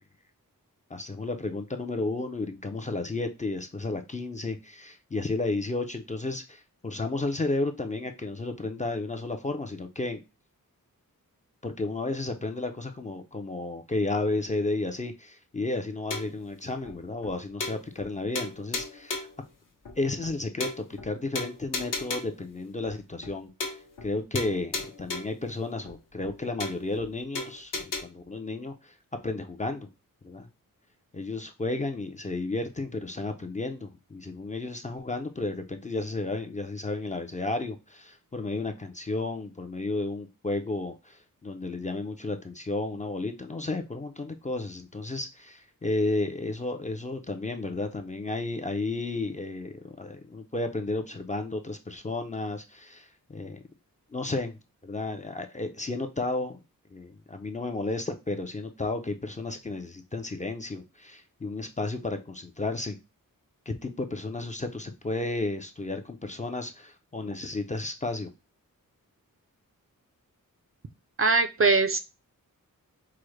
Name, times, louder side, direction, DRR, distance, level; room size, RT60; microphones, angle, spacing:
voice 1, 0.9-10.2 11.6-19.3 20.0-23.5 24.0-28.9 29.2-29.9 30.2-30.5 31.1-53.6 54.1-56.6 56.9-63.0 63.7-68.3, left 2 dB, 20° left, 5 dB, 0.4 m, -32 dB
sound 1, 16.1-16.4 16.9-17.0 17.2-17.3 17.6-18.1 18.4-19.4 19.9-20.0 20.2-20.3 20.6-21.1 21.4-22.4 22.9-23.0 23.2-23.3 23.6-24.1 24.4-25.4 25.9-26.0 26.2-26.3 26.6-27.1 27.4-28.0, left 3 dB, 65° left, 0.8 m, -35 dB
voice 2, 71.2-72.0, right 3 dB, 40° right, 8 dB, 0.4 m, -21 dB
4.8 x 2.0 x 3.1 m, 0.27 s
wide cardioid pair, 120°, 34 cm